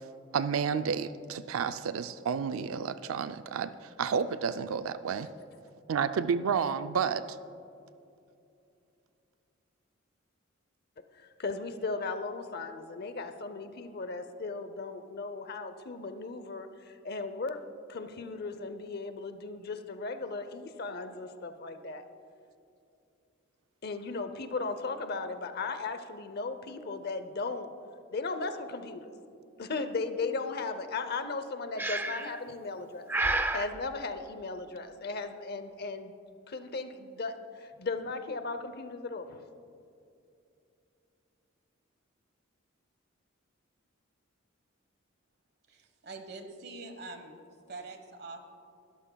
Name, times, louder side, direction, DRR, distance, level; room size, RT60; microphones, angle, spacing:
voice 1, 0.3-5.3 5.9-7.4, right 6 dB, 85° right, 11 dB, 0.4 m, -31 dB
voice 2, 11.4-17.6 17.9-22.0 23.8-27.7 28.1-29.1 29.6-36.1 36.5-37.3 37.6-39.4, left 3 dB, 50° left, 9 dB, 0.7 m, -36 dB
Breathing, 31.8-32.4 33.1-33.7, right 2 dB, 10° right, 0.4 m, -30 dB
voice 3, 45.7-47.4 47.7-48.4, right 3 dB, 55° right, 6 dB, 1.2 m, -44 dB
20.0 x 13.0 x 2.3 m, 2.6 s
head